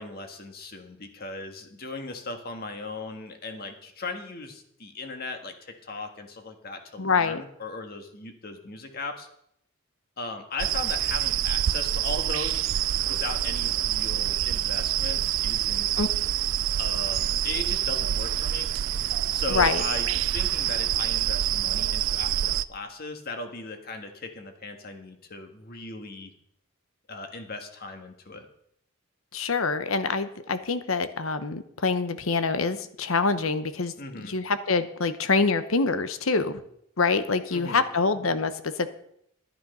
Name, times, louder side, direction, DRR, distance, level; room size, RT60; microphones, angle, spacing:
voice 1, 0.0-9.3 10.2-12.6 13.1-16.1 16.8-18.7 19.3-26.3 27.1-28.5 34.0-34.3 37.5-37.8, left 3 dB, 50° left, 5 dB, 1.6 m, -38 dB
voice 2, 7.0-7.4 16.0-16.1 19.5-19.8 29.3-36.6 37.0-38.9, left 4 dB, 80° left, 11 dB, 1.0 m, -25 dB
sound 1, 10.6-22.7, right 12 dB, 70° right, 0.4 m, -26 dB
12.0 x 10.0 x 5.5 m, 0.73 s
head